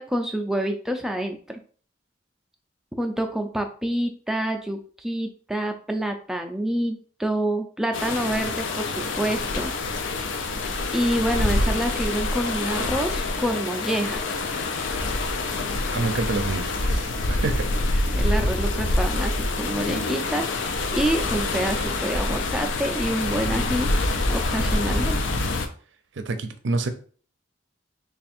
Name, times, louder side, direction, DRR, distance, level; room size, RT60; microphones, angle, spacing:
voice 1, 0.0-1.6 3.0-9.7 10.9-14.4 18.1-23.9 24.3-25.2, right 1 dB, ahead, 4 dB, 0.4 m, -27 dB
sound 1, 7.9-25.7, left 2 dB, 75° left, 0.5 m, -26 dB
voice 2, 15.9-17.7 26.2-26.9, right 3 dB, 70° right, 9 dB, 0.5 m, -28 dB
3.4 x 2.4 x 4.2 m, 0.43 s
head